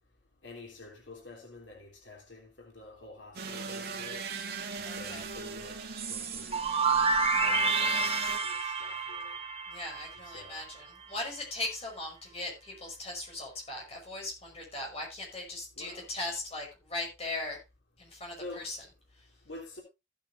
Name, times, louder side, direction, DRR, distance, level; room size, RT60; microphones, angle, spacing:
voice 1, 0.4-4.2 4.8-6.6 7.4-9.4 10.2-10.6 15.8-16.1 18.4-18.7 19.4-19.8, left 2 dB, 80° left, 3.3 m, -48 dB
sound 1, 3.3-8.4, right 4 dB, 60° right, 2.0 m, -40 dB
voice 2, 4.8-5.3 9.7-17.6 18.0-18.8 19.2-19.3, left 2 dB, 35° left, 5.7 m, -39 dB
sound 2, 6.0-10.7, right 4 dB, 35° right, 1.2 m, -29 dB
15.5 x 8.9 x 2.8 m
head